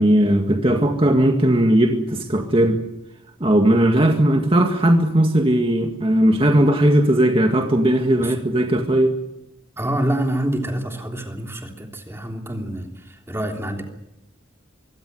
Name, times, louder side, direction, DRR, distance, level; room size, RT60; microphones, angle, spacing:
voice 1, 0.0-2.8 3.4-9.1, right 1 dB, 30° right, 3 dB, 2.0 m, -17 dB
voice 2, 9.8-13.8, right 1 dB, 15° right, 3 dB, 3.3 m, -26 dB
24.0 x 16.5 x 9.6 m, 0.90 s
head